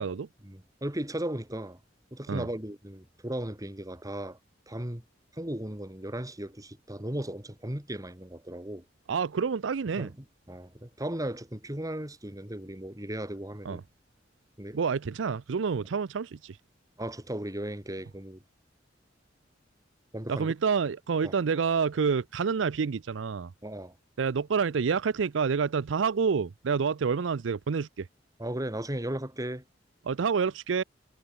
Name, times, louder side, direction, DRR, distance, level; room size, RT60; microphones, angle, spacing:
voice 1, 0.4-1.8 2.1-4.4 4.7-5.0 5.3-8.8 10.0-10.1 10.5-13.8 14.6-14.8 17.0-18.4 20.1-20.5 21.2-21.3 23.6-23.9 28.4-29.6, right 1 dB, 20° right, 2.7 m, -36 dB
voice 2, 9.1-10.1 13.6-13.8 14.7-16.6 20.3-23.5 24.2-28.1 30.1-30.8, right 5 dB, 80° right, 0.5 m, -28 dB
head